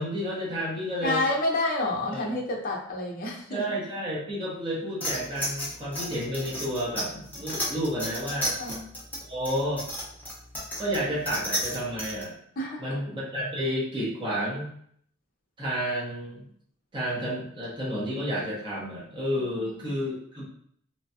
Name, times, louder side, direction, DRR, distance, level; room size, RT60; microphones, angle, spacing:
voice 1, 0.0-1.2 2.1-2.3 3.5-8.5 9.3-9.9 10.8-12.3 12.8-14.7 15.6-16.5 16.9-20.5, equal, 25° right, -7 dB, 1.0 m, -31 dB
voice 2, 1.0-3.6 8.6-8.8 12.6-13.0 19.4-19.8, left 2 dB, 45° left, 0 dB, 0.6 m, -29 dB
sound 1, 5.0-12.2, equal, 10° left, 0.8 m, -33 dB
3.1 x 2.2 x 2.7 m, 0.64 s
head